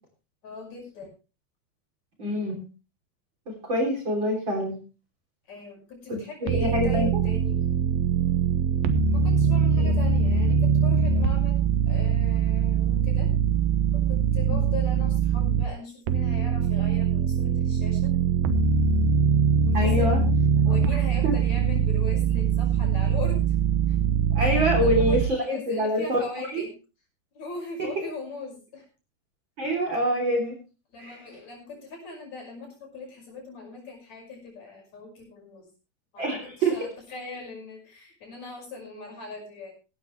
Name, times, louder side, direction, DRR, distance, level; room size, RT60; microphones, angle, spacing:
voice 1, 0.4-1.1 5.5-7.6 9.1-11.6 11.9-13.3 13.9-18.1 19.6-20.3 20.6-23.4 23.9-24.0 24.5-26.7 27.3-28.8 30.9-35.7 36.1-39.7, left 4 dB, 50° left, 0 dB, 6.9 m, -40 dB
voice 2, 2.2-2.6 3.6-4.8 6.1-6.2 6.5-7.1 9.8-9.9 14.5-14.6 19.7-20.2 20.7-20.8 21.2-21.3 24.3-26.2 26.5-26.6 27.8-27.9 29.6-30.5 31.0-31.2 36.2-36.8, equal, 30° right, 1 dB, 3.9 m, -25 dB
sound 1, 6.5-15.7 16.1-25.3, right 6 dB, 80° right, 2.8 m, -22 dB
17.0 x 12.5 x 3.3 m, 0.32 s
omnidirectional pair, 4.2 m